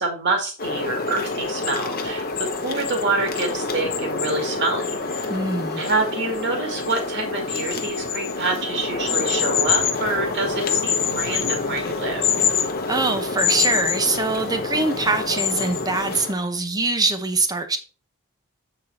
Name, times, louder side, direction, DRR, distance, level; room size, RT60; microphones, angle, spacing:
voice 1, 0.0-5.3 5.8-12.3, right 3 dB, 55° right, 2.2 m, -27 dB
sound 1, 0.6-16.3, left 5 dB, 45° left, 0.9 m, -26 dB
voice 2, 5.3-5.8 12.9-17.8, right 3 dB, 15° right, 0.8 m, -23 dB
8.2 x 4.1 x 4.2 m
head